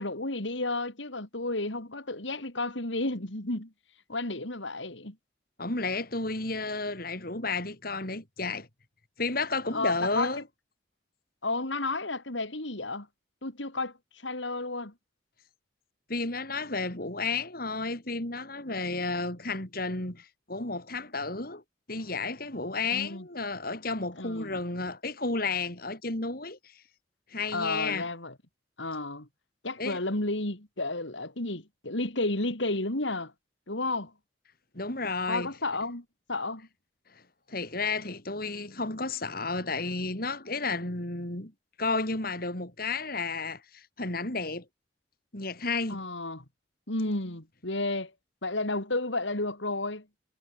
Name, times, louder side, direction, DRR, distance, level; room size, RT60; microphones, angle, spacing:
voice 1, 0.0-3.7 4.1-5.2 9.7-10.4 11.4-13.1 13.4-14.9 22.9-23.3 24.2-24.5 27.5-28.3 28.8-29.3 29.6-33.3 33.7-34.1 35.3-36.7 45.9-46.4 46.9-48.1 48.4-50.1, left 2 dB, 75° left, 3.8 m, -32 dB
voice 2, 5.6-8.7 9.2-10.4 16.1-21.6 21.9-26.7 27.3-28.1 29.8-30.0 34.7-35.5 37.5-41.5 41.8-44.6 45.3-46.0, left 3 dB, 50° left, 4.1 m, -32 dB
head